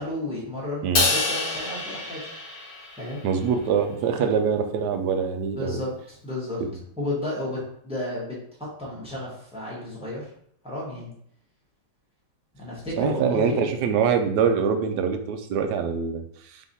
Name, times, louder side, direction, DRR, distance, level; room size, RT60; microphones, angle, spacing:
voice 1, 0.0-2.2 3.0-3.2 4.2-4.3 5.6-6.6 7.0-10.2 10.6-11.1 12.6-13.8, left 1 dB, 5° right, -5 dB, 1.0 m, -32 dB
Crash cymbal, 1.0-3.3, left 3 dB, 70° left, 0.5 m, -27 dB
voice 2, 3.2-5.8 13.0-16.6, right 6 dB, 75° right, 7 dB, 1.1 m, -24 dB
3.6 x 3.1 x 4.0 m, 0.68 s
omnidirectional pair, 1.9 m